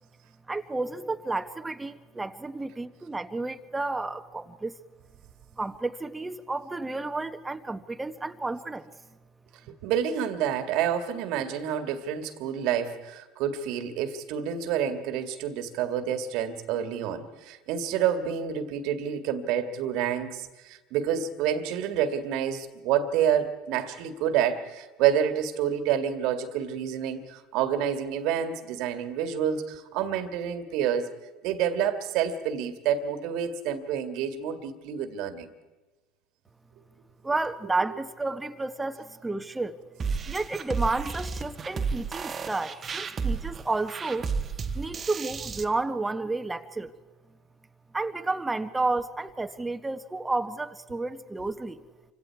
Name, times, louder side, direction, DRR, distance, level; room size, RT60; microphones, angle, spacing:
voice 1, 0.5-4.7 5.5-8.9 37.2-39.8 40.3-44.3 44.7-46.9 47.9-51.8, right 3 dB, 15° right, 1.4 m, -31 dB
voice 2, 9.7-31.1 31.4-35.5, right 9 dB, 60° right, 2.0 m, -28 dB
sound 1, 40.0-45.6, right 5 dB, 30° right, 1.3 m, -32 dB
28.5 x 25.5 x 4.7 m
hypercardioid pair, 75°, 0 cm